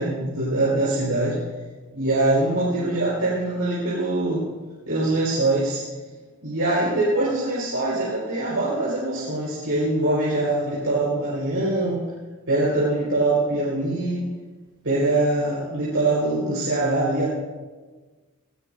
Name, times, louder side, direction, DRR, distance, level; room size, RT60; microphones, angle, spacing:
voice 1, 0.0-1.4 1.9-4.4 4.9-5.8 6.4-12.0 12.5-14.2 14.8-17.3, right 2 dB, 75° right, -7 dB, 4.8 m, -23 dB
19.5 x 18.5 x 2.7 m, 1.3 s
head